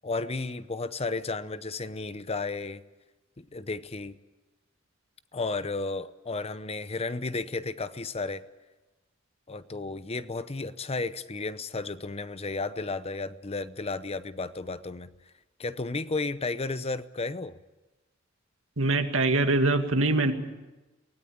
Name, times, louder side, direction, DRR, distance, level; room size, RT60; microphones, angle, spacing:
voice 1, 0.0-2.8 3.4-4.2 5.3-8.4 9.5-15.1 15.6-17.6, left 3 dB, 30° left, 14 dB, 0.7 m, -33 dB
voice 2, 18.8-20.3, right 2 dB, 80° right, 6 dB, 2.1 m, -23 dB
24.0 x 18.0 x 8.7 m, 1.1 s
head